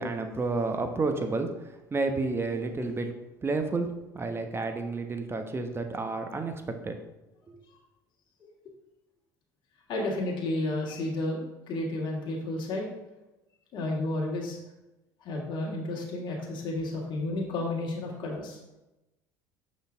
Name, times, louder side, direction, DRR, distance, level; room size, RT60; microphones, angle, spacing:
voice 1, 0.0-3.1 3.4-6.9, right 3 dB, 25° right, 6 dB, 1.1 m, -31 dB
voice 2, 9.9-11.4 11.7-12.9 13.7-14.6 15.2-18.6, left 2 dB, 50° left, -3 dB, 1.8 m, -31 dB
6.3 x 5.6 x 3.6 m, 0.97 s
hypercardioid pair, 70°, 10 cm